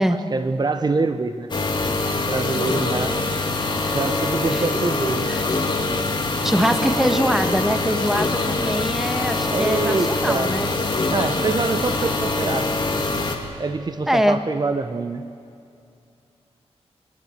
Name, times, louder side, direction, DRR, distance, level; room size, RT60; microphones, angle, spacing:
voice 1, 0.3-3.2 3.9-5.3 6.7-6.8 9.5-10.5 11.1-13.3 13.6-15.3, right 3 dB, 40° right, 9 dB, 1.0 m, -25 dB
sound 1, 1.5-13.4, left 3 dB, 45° left, 2.9 m, -24 dB
voice 2, 6.4-10.7 14.1-14.4, equal, 5° right, 7 dB, 1.6 m, -23 dB
24.5 x 22.5 x 8.3 m, 2.5 s
wide cardioid pair, 125°, 11 cm